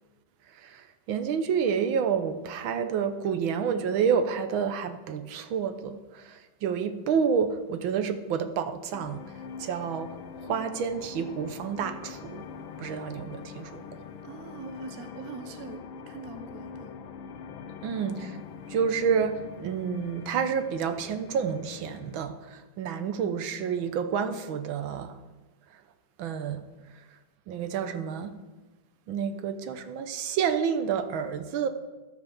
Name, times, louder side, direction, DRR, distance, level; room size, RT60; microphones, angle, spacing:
voice 1, 0.5-9.2 9.6-12.4 12.8-14.0 17.8-18.4 18.7-25.2 26.2-26.6 27.5-28.3 29.1-31.7, right 7 dB, 80° right, 1.6 m, -29 dB
sound 1, 8.9-22.3, left 6 dB, 80° left, 1.6 m, -43 dB
voice 2, 14.2-16.9, right 6 dB, 50° right, 1.3 m, -43 dB
12.5 x 6.7 x 7.0 m
omnidirectional pair, 2.2 m